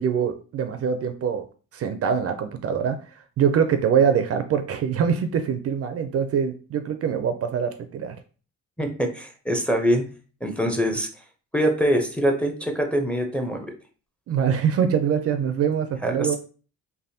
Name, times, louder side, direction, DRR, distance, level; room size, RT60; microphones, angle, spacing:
voice 1, 0.0-1.5 1.7-8.2 14.3-16.4, right 7 dB, 50° right, 8 dB, 0.4 m, -24 dB
voice 2, 8.8-10.0 10.4-11.1 11.5-13.7 16.0-16.4, equal, 5° left, 3 dB, 0.5 m, -24 dB
3.3 x 2.2 x 2.7 m, 0.38 s
cardioid pair, 90°, 30 cm